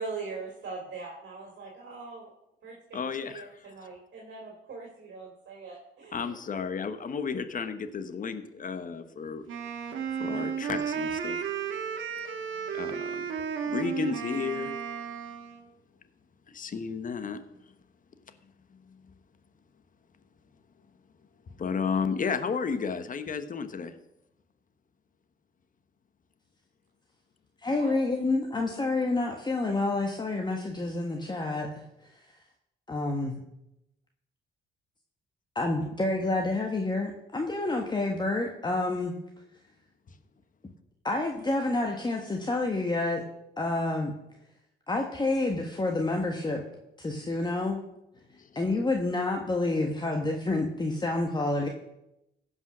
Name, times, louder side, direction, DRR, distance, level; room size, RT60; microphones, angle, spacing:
voice 1, 0.0-2.3 2.6-2.8 3.2-6.4 27.8-27.9, right 4 dB, 60° right, -1 dB, 2.9 m, -41 dB
voice 2, 2.9-3.5 6.1-9.5 10.2-11.4 12.7-13.2 13.7-14.7 16.5-17.4 21.6-23.9 48.4-48.5, left 5 dB, 40° left, 10 dB, 1.2 m, -32 dB
Wind instrument woodwind instrument, 9.5-15.7, right 7 dB, 75° right, 1.4 m, -33 dB
voice 3, 27.6-32.1 32.9-33.4 35.5-39.1 41.0-43.2 43.6-44.1 44.9-46.6 47.0-47.8 48.5-51.7, left 2 dB, 20° left, 2 dB, 1.4 m, -28 dB
16.0 x 5.6 x 6.1 m, 0.87 s
cardioid pair, 90°, 20 cm